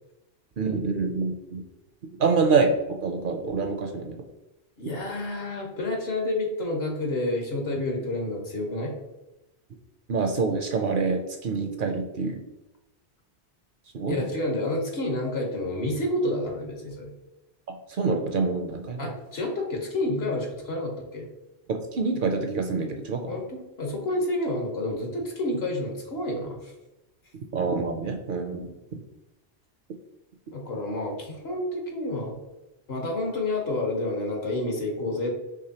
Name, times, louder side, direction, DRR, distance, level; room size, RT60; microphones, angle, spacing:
voice 1, 0.6-1.6 2.2-4.2 10.1-12.4 13.9-14.3 17.9-19.1 21.7-23.4 27.5-29.0, right 4 dB, 60° right, 4 dB, 0.6 m, -26 dB
voice 2, 4.8-8.9 14.1-17.1 19.0-21.3 23.3-26.7 30.5-32.4 32.9-35.3, left 1 dB, 70° left, 1 dB, 1.3 m, -29 dB
4.8 x 3.4 x 2.8 m, 0.97 s
omnidirectional pair, 1.1 m